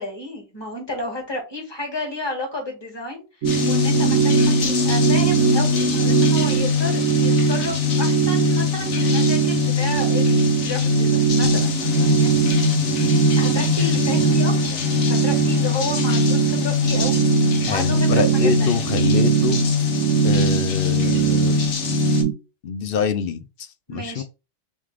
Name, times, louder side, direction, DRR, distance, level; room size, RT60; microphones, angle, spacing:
voice 1, 0.0-12.6 13.3-17.2 17.7-18.8 23.9-24.2, left 2 dB, 20° left, 1.6 m, -32 dB
sound 1, 3.4-22.2, left 6 dB, 85° left, 1.2 m, -22 dB
sound 2, 3.4-22.3, right 11 dB, 85° right, 1.0 m, -22 dB
voice 2, 17.6-19.6 20.2-21.6 22.6-24.2, left 6 dB, 60° left, 0.7 m, -25 dB
3.6 x 3.2 x 3.3 m
omnidirectional pair, 1.2 m